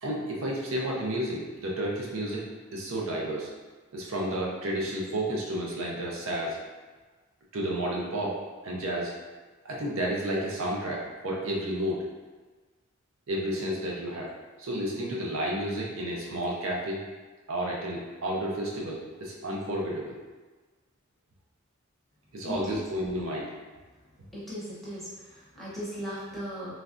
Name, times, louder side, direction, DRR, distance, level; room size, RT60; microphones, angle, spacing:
voice 1, 0.0-2.5 2.7-3.5 3.9-6.6 7.5-9.1 9.6-12.0 13.3-14.3 14.6-17.0 17.5-20.1 22.3-23.5, right 1 dB, 75° right, -3 dB, 0.6 m, -31 dB
voice 2, 22.4-22.8 24.3-26.8, equal, ahead, -10 dB, 0.8 m, -37 dB
3.1 x 2.4 x 2.5 m, 1.3 s
head